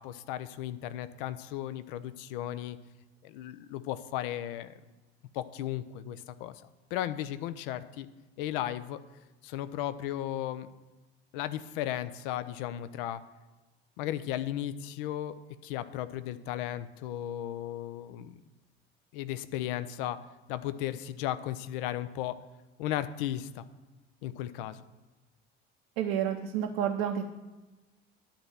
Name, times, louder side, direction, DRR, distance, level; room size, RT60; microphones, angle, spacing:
voice 1, 0.0-2.8 3.2-4.8 5.3-6.6 6.9-8.1 8.4-9.0 9.4-10.7 11.3-13.2 14.0-15.4 15.6-18.4 19.1-20.2 20.5-22.4 22.8-23.6 24.2-24.8, left 12 dB, 60° left, 13 dB, 0.7 m, -35 dB
voice 2, 26.0-27.3, right 9 dB, 60° right, 4 dB, 0.8 m, -30 dB
10.0 x 4.3 x 7.7 m, 1.2 s
figure-of-eight pair, 60°, 30 cm